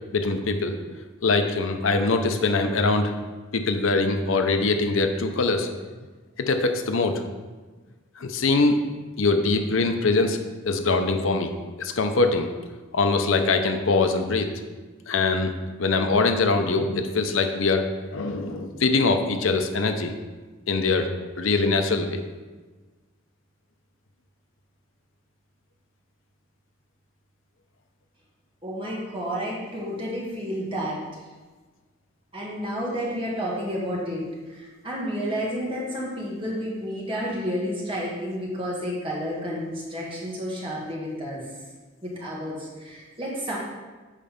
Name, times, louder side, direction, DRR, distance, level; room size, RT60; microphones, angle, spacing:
voice 1, 0.1-1.0 1.2-3.1 3.5-5.7 6.5-7.2 8.2-8.8 9.2-11.5 11.8-12.5 12.9-14.5 15.1-15.5 15.8-20.1 20.7-22.2, left 3 dB, 85° left, 7 dB, 0.7 m, -23 dB
voice 2, 28.6-31.0 32.3-41.4 42.0-43.6, equal, 25° right, -5 dB, 1.8 m, -31 dB
7.5 x 4.3 x 5.2 m, 1.3 s
head